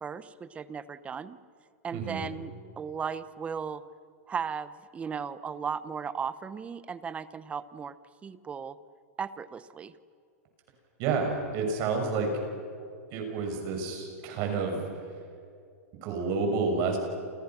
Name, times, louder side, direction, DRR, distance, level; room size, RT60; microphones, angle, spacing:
voice 1, 0.0-1.4 1.8-2.5 2.8-3.8 4.3-7.9 8.2-8.8 9.2-9.9, right 6 dB, 15° right, 15 dB, 0.9 m, -36 dB
voice 2, 1.9-2.3 11.0-12.3 13.1-14.9 16.0-17.0, right 4 dB, 45° right, 3 dB, 6.9 m, -29 dB
29.0 x 29.0 x 6.1 m, 2.4 s
supercardioid pair, 145°, 8 cm